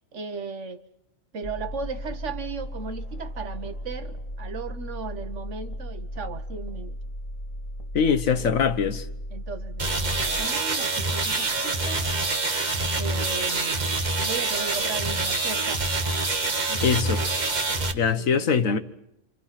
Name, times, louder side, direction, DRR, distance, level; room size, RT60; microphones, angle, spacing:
voice 1, 0.1-0.8 1.3-7.0 8.1-8.6 9.3-12.1 12.9-13.9 14.2-15.8 16.5-16.9 18.2-18.8, right 5 dB, 65° right, 1.5 m, -36 dB
sound 1, 1.4-10.5, equal, 25° left, 1.8 m, -36 dB
voice 2, 7.9-9.0 16.8-17.2 17.9-18.8, left 6 dB, 85° left, 1.6 m, -22 dB
sound 2, 9.8-17.9, right 2 dB, 35° right, 1.4 m, -26 dB
28.0 x 26.0 x 5.9 m
omnidirectional pair, 1.4 m